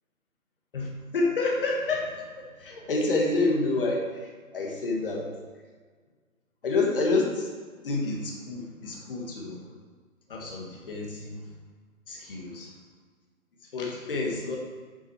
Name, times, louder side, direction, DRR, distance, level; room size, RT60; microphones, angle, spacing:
voice 1, 0.7-2.2 2.6-5.3 6.6-7.5 7.8-9.6 10.3-11.5 12.1-12.7 13.7-14.6, left 3 dB, 40° left, -1 dB, 2.0 m, -28 dB
8.1 x 7.8 x 4.6 m, 1.5 s
hypercardioid pair, 165°, 43 cm